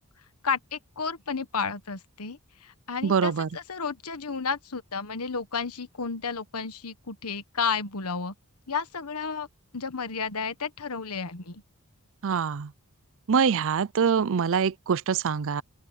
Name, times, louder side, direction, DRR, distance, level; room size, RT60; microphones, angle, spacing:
voice 1, 0.4-8.3 8.7-9.5 9.7-11.6, left 5 dB, 80° left, 1.4 m, -32 dB
voice 2, 3.0-3.5 12.2-12.7 13.3-15.6, right 6 dB, 60° right, 0.5 m, -24 dB
open air
head